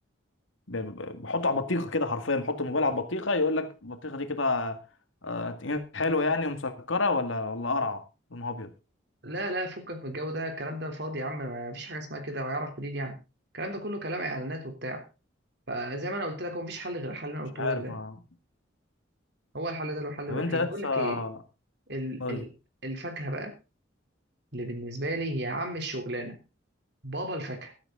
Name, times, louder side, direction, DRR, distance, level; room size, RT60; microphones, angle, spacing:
voice 1, 0.7-4.8 5.2-8.0 8.3-8.7 17.6-18.2 20.3-21.4 22.2-22.5, left 3 dB, 85° left, 2.1 m, -29 dB
voice 2, 9.2-13.2 13.5-15.0 15.7-17.9 19.5-21.2 21.9-22.5 22.8-23.5 24.5-26.4 27.0-27.7, right 1 dB, 60° right, 3.3 m, -34 dB
13.0 x 13.0 x 3.9 m
head